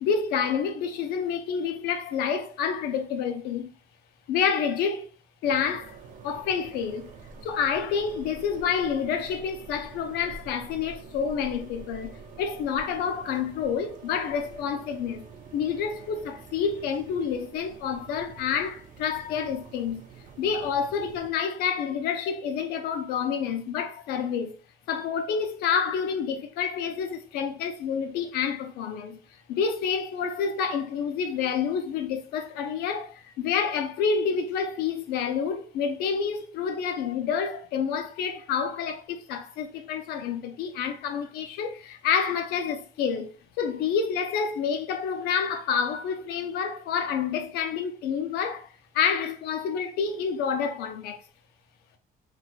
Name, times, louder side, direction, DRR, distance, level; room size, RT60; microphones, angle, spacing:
voice 1, 0.0-3.7 4.3-5.1 5.4-6.0 6.2-7.1 7.4-15.3 15.5-20.1 20.4-24.5 24.9-29.2 29.5-51.2, left 6 dB, 90° left, 0.6 m, -28 dB
sound 1, 5.4-21.3, right 5 dB, 55° right, 0.5 m, -47 dB
4.1 x 2.4 x 2.3 m
cardioid pair, 125°, 16 cm